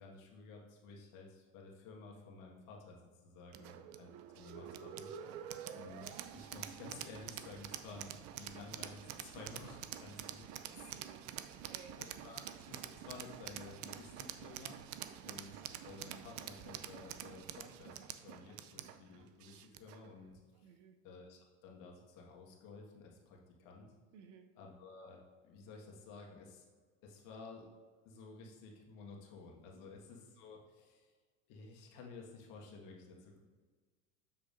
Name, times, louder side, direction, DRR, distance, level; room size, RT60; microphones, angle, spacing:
voice 1, 0.0-3.0 3.2-5.3 5.7-10.9 12.0-14.8 15.2-20.7 21.0-23.9 24.6-26.7 27.0-27.7 28.1-31.1 31.5-33.4, left 4 dB, 60° left, -1 dB, 1.7 m, -53 dB
sound 1, 3.5-20.1, right 11 dB, 55° right, 0.5 m, -47 dB
voice 2, 10.7-12.0 15.0-15.3 20.6-21.0 24.1-24.5 29.7-30.0, right 6 dB, 75° right, 6 dB, 0.9 m, -58 dB
7.4 x 6.5 x 2.6 m, 1.5 s
supercardioid pair, 105°, 37 cm